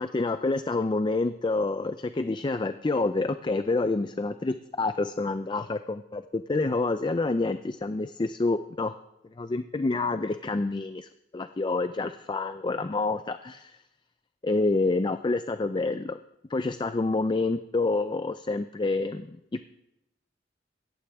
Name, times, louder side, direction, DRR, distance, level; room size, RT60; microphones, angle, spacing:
voice 1, 0.0-8.9 9.4-13.8 14.4-16.2 16.5-19.6, left 3 dB, 25° left, 10 dB, 0.4 m, -28 dB
17.5 x 14.5 x 3.6 m, 0.86 s
head